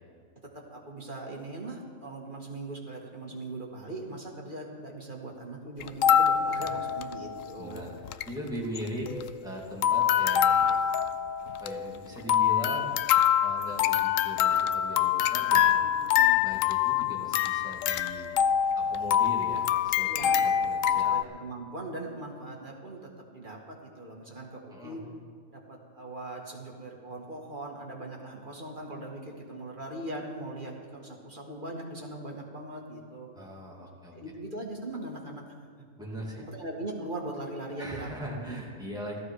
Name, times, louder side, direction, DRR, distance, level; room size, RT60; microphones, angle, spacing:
voice 1, 0.5-7.9 15.8-16.3 20.1-20.5 20.9-25.0 25.5-33.3 34.1-35.4 36.4-38.6, right 2 dB, 35° right, -1 dB, 2.1 m, -40 dB
sound 1, 5.8-7.5 7.8-7.9 8.0-8.3 8.8-9.5 9.8-21.2, left 9 dB, 70° left, 0.9 m, -25 dB
voice 2, 6.5-6.8 7.6-7.9 8.3-9.1 9.4-10.7 11.4-12.9 13.4-15.8 16.4-18.4 18.7-21.2 24.7-25.0 33.3-34.2 36.0-36.5 37.8-39.2, equal, 5° right, -4 dB, 2.7 m, -40 dB
16.0 x 14.0 x 4.9 m, 2.1 s
omnidirectional pair, 1.5 m